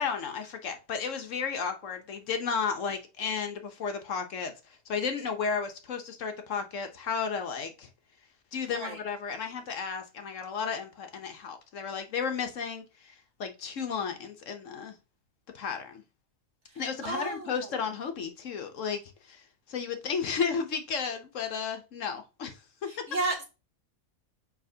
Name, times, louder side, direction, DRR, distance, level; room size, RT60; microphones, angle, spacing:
voice 1, 0.0-4.5 4.9-7.9 8.5-13.1 13.4-14.9 15.5-16.0 16.8-19.0 19.3-19.4 19.7-23.0, left 6 dB, 65° left, 1.1 m, -33 dB
voice 2, 16.7-17.7 22.8-23.4, right 3 dB, 55° right, 2.0 m, -33 dB
7.2 x 5.0 x 2.7 m
omnidirectional pair, 1.5 m